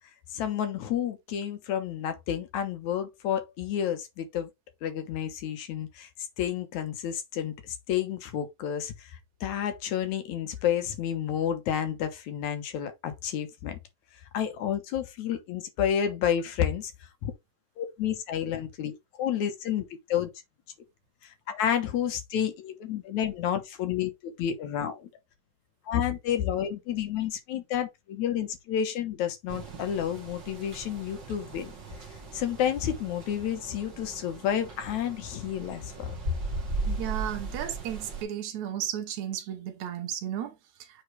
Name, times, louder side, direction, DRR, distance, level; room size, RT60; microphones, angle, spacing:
voice 1, 0.3-4.5 4.8-6.1 6.4-13.8 14.3-16.9 17.2-17.3 17.8-20.3 21.2-25.1 25.9-31.7 32.3-36.2 36.5-36.6, left 9 dB, 75° left, 2.5 m, -30 dB
sound 1, 29.5-38.2, right 4 dB, 40° right, 2.4 m, -38 dB
voice 2, 36.9-40.5, right 10 dB, 70° right, 2.3 m, -34 dB
8.0 x 4.0 x 3.3 m
omnidirectional pair, 3.5 m